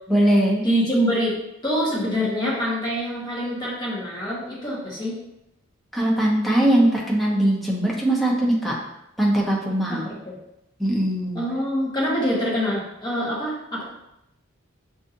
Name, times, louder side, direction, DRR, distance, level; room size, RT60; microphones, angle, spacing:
voice 1, 0.1-0.6 5.9-8.7 9.2-10.1 10.8-11.4, right 1 dB, ahead, -4 dB, 0.8 m, -20 dB
voice 2, 0.6-1.4 1.6-5.2 9.9-10.4 11.3-13.8, equal, 20° left, -6 dB, 1.3 m, -25 dB
5.8 x 2.6 x 2.7 m, 0.84 s
head